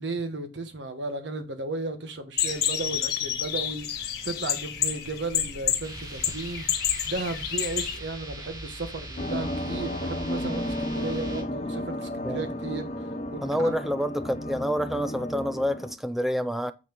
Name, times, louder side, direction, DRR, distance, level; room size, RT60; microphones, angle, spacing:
voice 1, 0.0-12.9 13.3-13.8, right 2 dB, 75° right, 1.3 m, -34 dB
sound 1, 2.4-8.0, left 10 dB, 55° left, 1.9 m, -29 dB
sound 2, 5.8-11.4, right 1 dB, 20° right, 1.5 m, -41 dB
sound 3, 9.2-15.9, left 1 dB, 35° left, 0.8 m, -33 dB
voice 2, 13.4-16.7, equal, ahead, 0.5 m, -28 dB
8.7 x 4.2 x 5.2 m
head